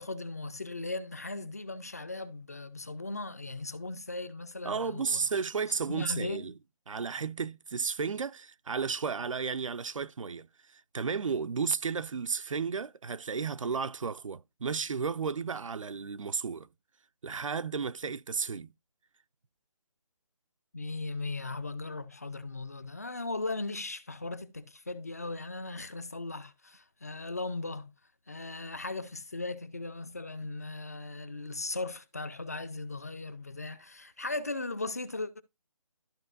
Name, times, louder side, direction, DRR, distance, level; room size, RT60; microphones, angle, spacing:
voice 1, 0.0-5.3 5.9-6.5 20.7-27.9 28.3-35.4, left 2 dB, 30° left, 0.5 m, -38 dB
voice 2, 4.6-6.5 6.9-16.7 17.2-18.7, right 5 dB, 65° right, 0.5 m, -33 dB
13.5 x 4.5 x 2.5 m
figure-of-eight pair, 170°, 18 cm